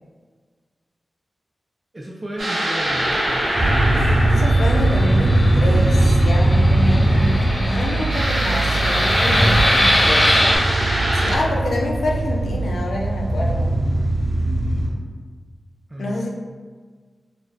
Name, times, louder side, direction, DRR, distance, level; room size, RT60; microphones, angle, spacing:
voice 1, 1.9-3.5 15.9-16.2, equal, 20° right, -3 dB, 0.3 m, -33 dB
sound 1, 2.4-5.8 8.1-11.4, right 1 dB, 75° right, 0.8 m, -24 dB
Fixed-wing aircraft airplane, 2.9-10.6, left 1 dB, 35° left, 0.5 m, -23 dB
sound 2, 3.5-14.9, right 1 dB, 55° right, 1.4 m, -19 dB
voice 2, 4.3-10.4 11.1-13.8 16.0-16.3, left 1 dB, 90° left, -1 dB, 0.4 m, -27 dB
3.9 x 2.0 x 2.4 m, 1.5 s
wide cardioid pair, 100°, 0 cm